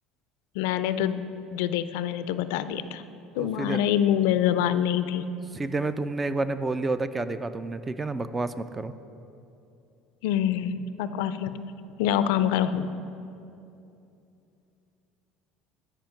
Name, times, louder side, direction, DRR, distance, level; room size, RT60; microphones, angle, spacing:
voice 1, 0.6-1.2 1.5-3.0 3.4-5.3 10.2-11.5 12.0-12.9, left 10 dB, 85° left, 13 dB, 0.3 m, -25 dB
voice 2, 3.4-3.8 5.5-8.9, right 3 dB, 15° right, 12 dB, 0.3 m, -29 dB
10.5 x 4.9 x 5.8 m, 2.7 s
cardioid pair, 125°, 0 cm